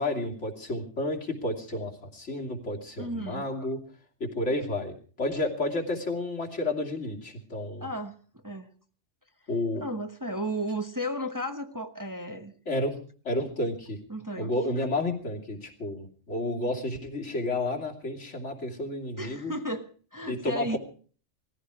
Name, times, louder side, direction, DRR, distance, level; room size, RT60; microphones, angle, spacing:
voice 1, 0.0-3.8 4.2-7.9 9.5-9.8 12.7-13.0 13.2-14.0 14.4-19.5 20.3-20.8, left 2 dB, 75° left, 1 dB, 3.2 m, -31 dB
voice 2, 3.0-3.7 7.8-8.2 8.4-8.7 9.8-12.5 14.1-14.5 19.2-20.8, equal, 15° right, 6 dB, 1.1 m, -34 dB
19.5 x 15.0 x 4.8 m, 0.43 s
omnidirectional pair, 1.2 m